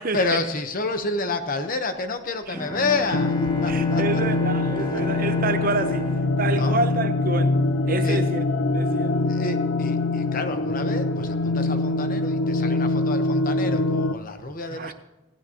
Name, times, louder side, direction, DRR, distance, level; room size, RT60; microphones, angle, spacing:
voice 1, 0.1-4.2 4.9-5.0 6.5-6.8 8.0-8.2 9.3-14.9, left 3 dB, 40° left, 1.0 m, -29 dB
Bowed string instrument, 2.5-7.5, left 3 dB, 25° left, 2.0 m, -33 dB
sound 1, 3.1-14.1, left 2 dB, 85° left, 0.6 m, -24 dB
voice 2, 3.7-6.1 6.4-7.5 7.9-8.4 8.7-9.2 14.7-14.9, right 3 dB, 45° right, 0.8 m, -28 dB
16.0 x 15.5 x 3.0 m
head